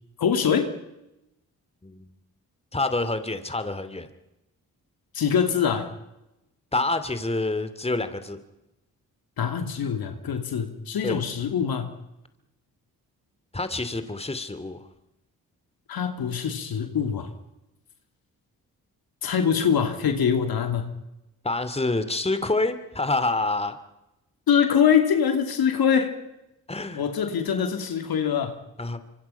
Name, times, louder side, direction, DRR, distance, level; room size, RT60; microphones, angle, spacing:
voice 1, 0.2-0.7 5.1-5.9 9.4-11.9 15.9-17.3 19.2-20.9 24.5-26.2 26.9-28.6, left 7 dB, 75° left, 6 dB, 2.8 m, -24 dB
voice 2, 2.7-4.1 6.7-8.4 11.0-11.2 13.5-14.9 21.4-23.8 26.7-27.0 28.8-29.0, left 2 dB, 15° left, 11 dB, 2.5 m, -27 dB
25.5 x 25.0 x 5.7 m, 0.91 s
supercardioid pair, 50°, 37 cm